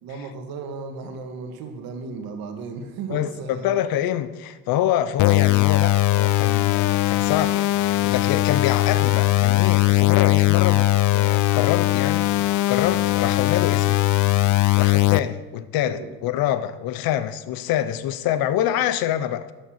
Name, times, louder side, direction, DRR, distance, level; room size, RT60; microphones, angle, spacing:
voice 1, 0.0-3.7 15.8-16.1, right 4 dB, 70° right, 1.9 m, -35 dB
voice 2, 3.1-14.0 14.8-19.5, left 11 dB, 70° left, 0.9 m, -26 dB
sound 1, 5.2-15.2, left 16 dB, 55° left, 0.5 m, -19 dB
12.5 x 6.7 x 6.5 m
cardioid pair, 140°, 37 cm